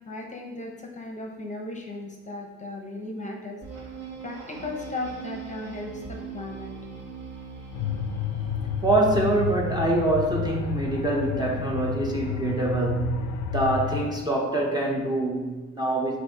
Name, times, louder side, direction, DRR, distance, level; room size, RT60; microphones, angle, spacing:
voice 1, 0.0-3.6 4.2-6.7, left 2 dB, 25° left, 1 dB, 0.8 m, -36 dB
sound 1, 3.6-10.1, right 4 dB, 55° right, 1.1 m, -41 dB
sound 2, 7.7-14.0, left 6 dB, 80° left, 0.5 m, -31 dB
voice 2, 8.8-16.2, right 2 dB, 15° right, -2 dB, 0.7 m, -25 dB
7.2 x 2.6 x 2.9 m, 1.3 s
cardioid pair, 90°, 30 cm